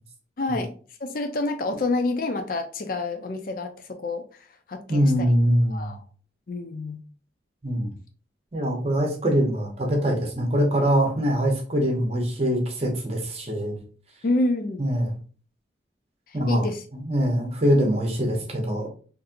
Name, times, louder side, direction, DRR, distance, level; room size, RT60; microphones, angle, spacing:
voice 1, 0.4-0.7 1.0-5.3 5.7-6.0 6.5-7.0 14.2-14.8 16.3-16.8, left 2 dB, 50° left, 7 dB, 0.4 m, -28 dB
voice 2, 4.9-5.9 7.6-7.9 8.5-13.8 14.8-15.1 16.3-18.9, equal, 35° right, 1 dB, 0.9 m, -23 dB
4.1 x 2.6 x 2.5 m, 0.39 s
head